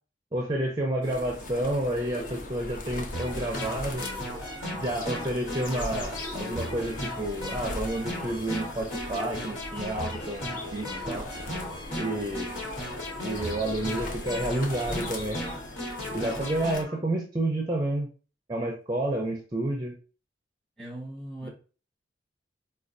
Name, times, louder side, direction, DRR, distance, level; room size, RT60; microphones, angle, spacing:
voice 1, 0.3-4.1 4.7-11.3 12.0-12.5 13.2-15.4 16.1-18.1 18.5-19.9 21.4-21.5, right 1 dB, 20° right, 0.4 m, -30 dB
sound 1, 1.0-16.8, left 2 dB, 45° left, 0.5 m, -39 dB
sound 2, 3.1-16.8, equal, 85° left, 1.3 m, -36 dB
voice 2, 16.1-16.6 16.9-17.0 20.8-21.5, right 1 dB, 5° left, 0.9 m, -41 dB
4.3 x 2.3 x 2.5 m
head